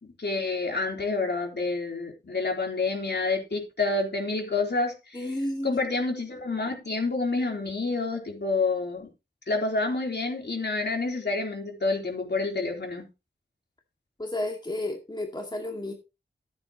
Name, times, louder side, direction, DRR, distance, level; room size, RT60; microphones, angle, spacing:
voice 1, 0.2-5.3 5.6-9.1 9.5-13.1, left 3 dB, 60° left, 4.0 m, -28 dB
voice 2, 5.1-5.8 14.2-15.9, left 1 dB, 20° left, 2.3 m, -32 dB
14.0 x 8.8 x 3.1 m
wide cardioid pair, 70°, 20 cm